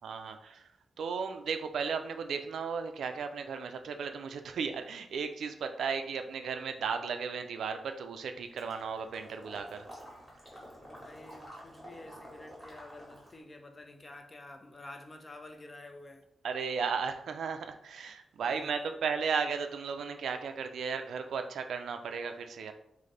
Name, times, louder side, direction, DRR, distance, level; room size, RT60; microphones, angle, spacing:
voice 1, 0.0-0.7 1.0-9.9 16.4-22.7, right 6 dB, 85° right, 0.3 m, -35 dB
Water / Liquid, 8.6-13.4, equal, ahead, 1.0 m, -50 dB
voice 2, 10.8-16.3 18.4-19.0, left 2 dB, 20° left, 0.4 m, -50 dB
3.8 x 2.5 x 3.2 m
wide cardioid pair, 165°, 0 cm